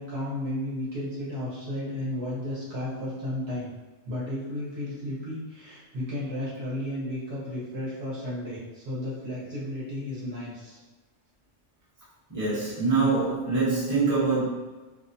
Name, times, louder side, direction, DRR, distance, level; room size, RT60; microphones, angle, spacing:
voice 1, 0.0-3.7 4.0-10.8, left 1 dB, 60° right, -8 dB, 1.0 m, -33 dB
voice 2, 12.3-14.5, right 4 dB, 15° right, -9 dB, 0.8 m, -24 dB
2.6 x 2.1 x 2.6 m, 1.2 s
omnidirectional pair, 1.3 m